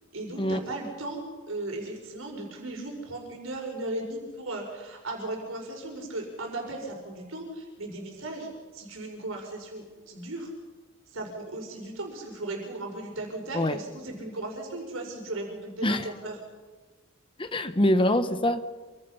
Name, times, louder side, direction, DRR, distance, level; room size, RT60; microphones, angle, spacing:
voice 1, 0.1-1.2 1.5-10.5 11.1-16.4, right 2 dB, 85° right, 1 dB, 5.4 m, -36 dB
voice 2, 17.4-18.7, left 1 dB, 25° left, 10 dB, 1.3 m, -24 dB
28.0 x 24.5 x 5.8 m, 1.3 s
head